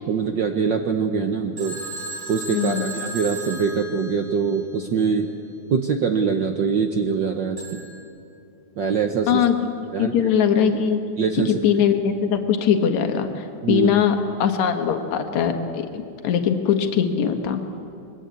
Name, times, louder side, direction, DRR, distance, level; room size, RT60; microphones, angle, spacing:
voice 1, 0.1-1.8 2.3-5.3 5.7-7.9 8.8-9.4 9.9-10.3 11.2-11.6 13.6-13.9, right 6 dB, 80° right, 5 dB, 1.0 m, -23 dB
Telephone, 1.6-4.6 7.6-8.0, right 2 dB, 45° right, 8.1 m, -35 dB
voice 2, 2.5-2.8 9.3-9.5 10.0-11.0 11.6-17.6, left 8 dB, 70° left, 6 dB, 2.8 m, -21 dB
26.5 x 21.5 x 8.3 m, 2.6 s
omnidirectional pair, 3.5 m